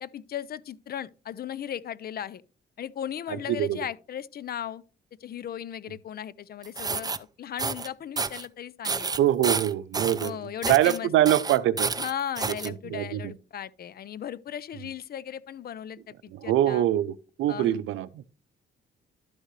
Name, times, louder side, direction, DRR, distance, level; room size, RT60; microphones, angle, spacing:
voice 1, 0.0-2.4 2.8-4.8 5.2-9.1 10.2-11.1 12.0-16.8 17.5-17.8, left 9 dB, 50° left, 0.5 m, -36 dB
sound 1, 6.6-7.2 7.6-7.9 8.2-8.5 8.8-10.3 10.6-11.0 11.2-12.7, right 4 dB, 20° right, 0.6 m, -30 dB
voice 2, 9.2-10.4 10.7-11.9 12.6-13.3 16.3-18.2, right 12 dB, 85° right, 0.6 m, -24 dB
12.0 x 6.4 x 3.2 m
cardioid pair, 90°, 20 cm